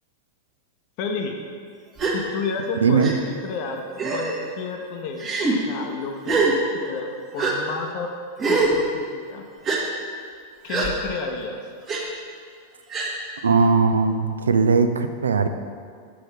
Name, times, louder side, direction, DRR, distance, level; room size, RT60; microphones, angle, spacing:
voice 1, 1.0-1.4 2.1-3.9 4.1-8.1 8.5-9.4 10.6-11.6, left 4 dB, 45° left, 3 dB, 0.7 m, -31 dB
Gasp, 2.0-2.2 3.0-3.1 4.0-4.4 5.2-5.5 6.2-6.5 7.4-7.5 8.4-8.7 9.6-9.8 10.7-10.9 11.9-12.0 12.9-13.1, right 4 dB, 25° right, 1.2 m, -23 dB
voice 2, 2.8-3.1 13.4-15.5, right 5 dB, 70° right, 9 dB, 0.4 m, -19 dB
7.5 x 6.3 x 4.2 m, 2.1 s
figure-of-eight pair, 90°, 0 cm